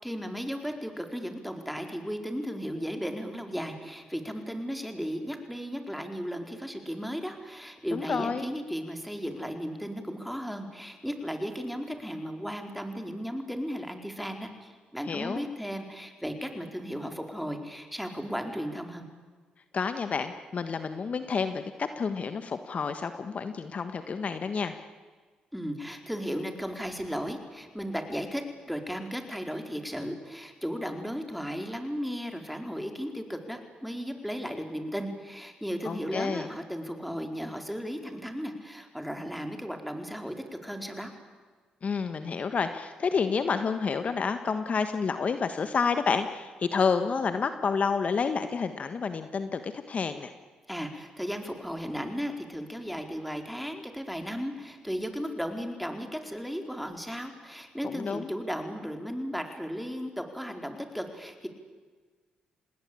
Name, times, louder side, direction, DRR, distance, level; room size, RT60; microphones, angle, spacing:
voice 1, 0.0-19.0 25.5-28.4 28.7-40.3 40.6-41.1 50.7-61.5, equal, ahead, 5 dB, 4.4 m, -35 dB
voice 2, 7.9-8.5 15.1-15.4 19.7-24.7 35.8-36.5 41.8-50.3 57.8-58.3, left 5 dB, 50° left, 9 dB, 1.5 m, -29 dB
27.5 x 19.5 x 8.7 m, 1.4 s
supercardioid pair, 60°, 3 cm